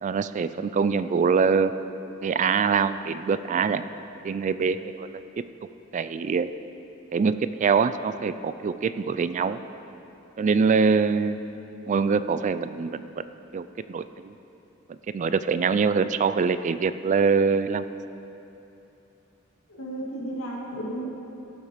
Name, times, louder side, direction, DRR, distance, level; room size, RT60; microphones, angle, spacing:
voice 1, 0.0-1.7 2.2-3.8 4.2-5.4 5.9-6.5 7.1-9.6 10.4-11.4 11.9-13.1 13.5-14.3 14.9-17.8, right 5 dB, 35° right, 13 dB, 0.3 m, -24 dB
voice 2, 19.7-21.1, right 1 dB, 80° left, -4 dB, 2.4 m, -33 dB
16.5 x 7.2 x 5.0 m, 2.9 s
head